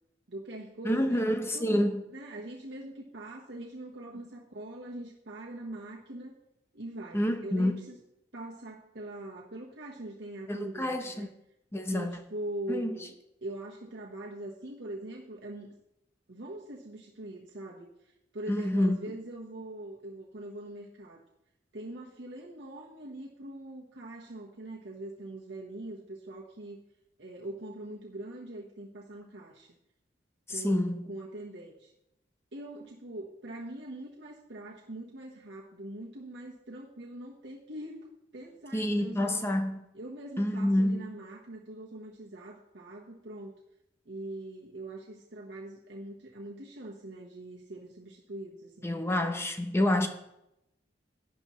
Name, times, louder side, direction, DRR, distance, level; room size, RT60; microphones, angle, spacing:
voice 1, 0.3-1.2 1.5-6.3 6.7-8.0 8.3-11.3 11.9-13.1 13.4-15.7 16.3-21.2 21.7-26.9 27.2-29.7 30.5-31.9 32.5-39.5 39.9-43.6 44.1-48.9, right 1 dB, 75° right, 1.2 m, -42 dB
voice 2, 0.8-2.0 7.1-7.8 10.5-11.3 11.7-12.2 12.7-13.0 18.5-19.0 30.5-31.0 38.7-39.8 40.4-41.1 48.8-50.1, left 1 dB, 15° left, 0.7 m, -28 dB
11.5 x 9.8 x 3.1 m
head